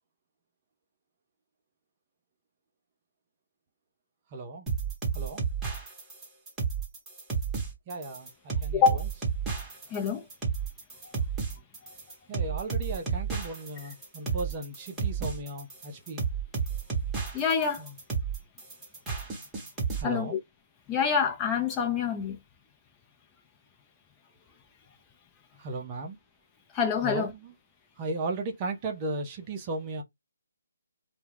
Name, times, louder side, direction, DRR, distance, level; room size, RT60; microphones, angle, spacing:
voice 1, 4.3-4.7 5.1-5.4 7.9-9.1 12.3-16.2 17.8-18.0 20.0-20.4 25.6-26.2 27.0-27.5 28.0-30.0, right 2 dB, 25° right, 0.5 m, -36 dB
sound 1, 4.7-20.0, right 6 dB, 10° right, 1.0 m, -32 dB
voice 2, 8.7-9.0 9.9-10.2 17.3-17.8 20.0-20.4 20.9-22.4 26.7-27.3, left 6 dB, 15° left, 0.6 m, -26 dB
2.2 x 2.1 x 3.3 m
figure-of-eight pair, 150°, 0 cm